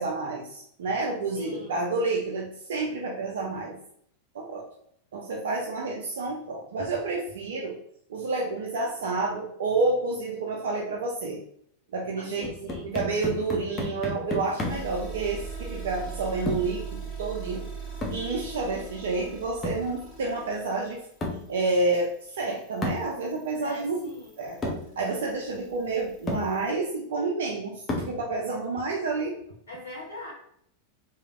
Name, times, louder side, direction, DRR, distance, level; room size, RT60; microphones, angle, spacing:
voice 1, 0.0-3.8 4.3-4.7 5.1-7.8 8.1-11.4 11.9-17.7 18.1-21.0 21.5-24.0 24.4-29.4, right 3 dB, 60° right, 0 dB, 0.4 m, -29 dB
voice 2, 1.3-1.8 12.2-13.0 23.6-24.3 29.7-30.3, left 2 dB, 65° left, -4 dB, 0.8 m, -42 dB
sound 1, 12.4-15.0 16.5-16.8 18.0-18.3 19.6-19.9 21.2-21.5 22.8-23.1 24.1-24.2 24.6-24.9 25.8-25.9 26.3-26.5 27.9-28.2, left 2 dB, 20° left, 0.7 m, -32 dB
sound 2, 14.6-26.7, right 5 dB, 10° right, 1.4 m, -41 dB
3.1 x 2.0 x 2.4 m, 0.67 s
figure-of-eight pair, 90°, 0 cm